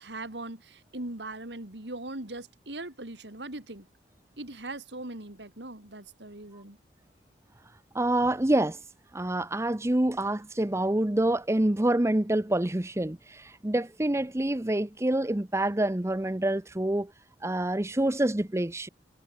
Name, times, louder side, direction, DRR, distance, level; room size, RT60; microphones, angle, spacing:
voice 1, 0.0-3.9 4.4-6.8, right 2 dB, 80° right, 3.3 m, -40 dB
voice 2, 7.9-8.8 9.1-17.1 17.4-18.9, right 1 dB, 15° right, 0.8 m, -27 dB
head